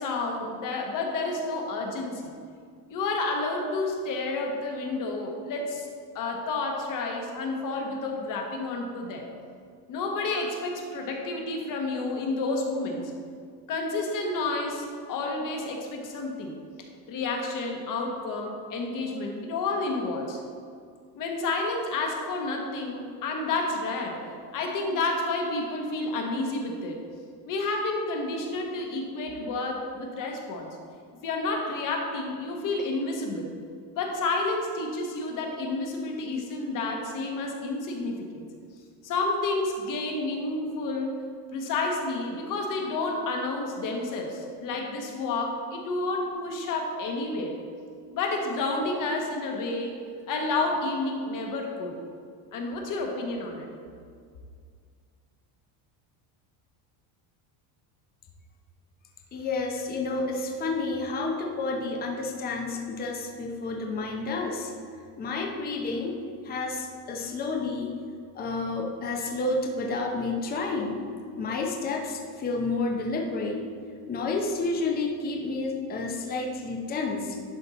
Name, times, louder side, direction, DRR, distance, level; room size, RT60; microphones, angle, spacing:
voice 1, 0.0-2.3 2.9-5.9 6.1-9.3 9.9-13.1 13.7-16.6 17.1-20.4 21.1-27.0 27.4-30.8 31.2-33.5 33.9-38.5 39.0-41.2 41.5-47.6 48.1-50.0 50.3-52.0 52.5-53.7, left 3 dB, 45° left, 1 dB, 1.3 m, -30 dB
voice 2, 59.3-64.7 65.2-66.2 66.4-68.0 68.3-71.0 71.4-73.6 74.1-77.4, left 3 dB, 20° left, 1 dB, 0.7 m, -30 dB
11.5 x 4.3 x 4.2 m, 2.2 s
cardioid pair, 160°, 46 cm